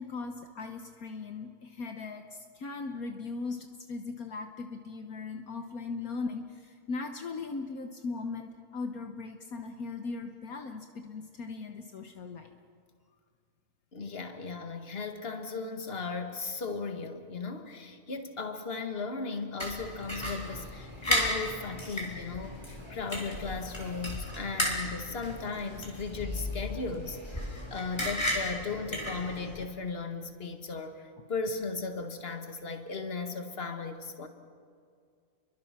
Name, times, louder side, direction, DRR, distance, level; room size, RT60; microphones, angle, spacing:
voice 1, 0.0-12.5, left 4 dB, 65° left, 5 dB, 1.5 m, -38 dB
voice 2, 13.9-34.3, left 4 dB, 40° left, 6 dB, 1.9 m, -36 dB
sound 1, 19.6-29.6, left 1 dB, 15° left, 3.6 m, -35 dB
30.0 x 23.0 x 5.9 m, 2.2 s
omnidirectional pair, 1.6 m